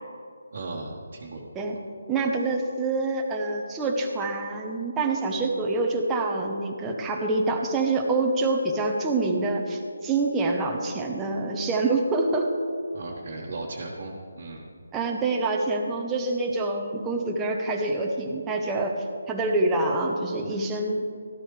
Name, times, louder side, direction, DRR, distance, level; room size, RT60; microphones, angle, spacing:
voice 1, 0.5-1.4 12.9-14.7, right 2 dB, 50° right, -4 dB, 1.4 m, -36 dB
voice 2, 2.1-12.5 14.9-18.9 19.3-21.1, right 2 dB, 10° right, 0 dB, 0.9 m, -26 dB
13.5 x 12.5 x 3.3 m, 2.3 s
figure-of-eight pair, 160°, 0 cm